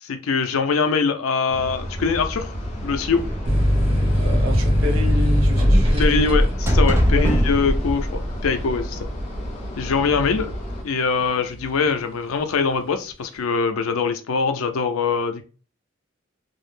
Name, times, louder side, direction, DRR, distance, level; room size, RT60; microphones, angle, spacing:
voice 1, 0.0-2.5 2.8-3.3 6.0-9.1 9.8-10.5 10.8-15.4, left 5 dB, 90° left, 0.4 m, -23 dB
sound 1, 1.5-10.8, equal, 30° left, 0.6 m, -33 dB
sound 2, 2.5-9.3, equal, 10° right, 0.4 m, -23 dB
sound 3, 3.4-10.7 11.2-11.9, equal, 30° right, 0.8 m, -21 dB
voice 2, 4.1-6.4 7.1-7.3, left 1 dB, 80° right, 0.6 m, -29 dB
2.3 x 2.0 x 3.2 m
head